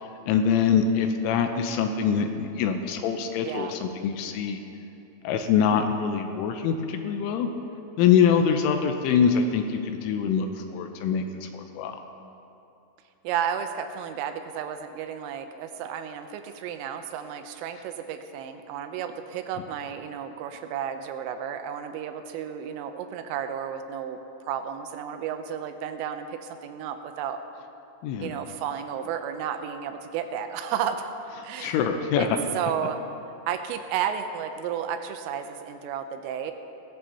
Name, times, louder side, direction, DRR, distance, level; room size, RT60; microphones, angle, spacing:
voice 1, 0.3-4.6 5.2-7.5 8.0-10.5 10.7-12.0 28.0-28.3 31.6-32.4, left 7 dB, 85° left, 6 dB, 3.1 m, -24 dB
voice 2, 3.4-3.7 8.3-8.7 13.2-24.2 24.5-27.4 28.2-31.1 31.4-31.8 32.2-33.0 33.5-36.5, right 8 dB, 85° right, 7 dB, 3.2 m, -32 dB
19.5 x 14.5 x 2.9 m, 2.8 s
omnidirectional pair, 5.9 m